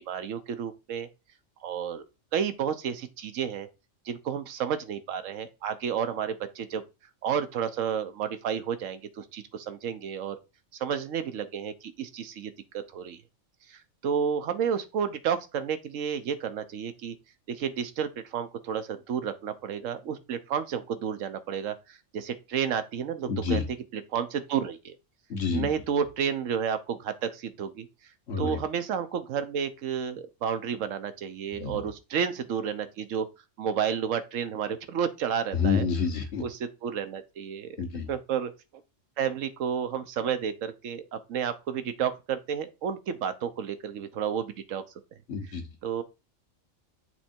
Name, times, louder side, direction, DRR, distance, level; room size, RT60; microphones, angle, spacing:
voice 1, 0.1-1.1 1.6-2.0 2.3-3.7 4.1-6.8 7.2-10.4 10.8-13.2 13.7-17.2 17.5-23.6 24.1-25.0 25.5-27.9 28.4-33.3 33.6-35.8 36.4-37.8 38.1-38.5 39.2-44.8 45.8-46.0, right 8 dB, 80° right, 1.1 m, -31 dB
voice 2, 23.3-23.6 25.3-25.7 28.3-28.6 31.5-31.9 35.5-36.4 37.8-38.1 45.3-45.7, left 5 dB, 55° left, 1.4 m, -28 dB
7.4 x 3.3 x 4.3 m
omnidirectional pair, 1.3 m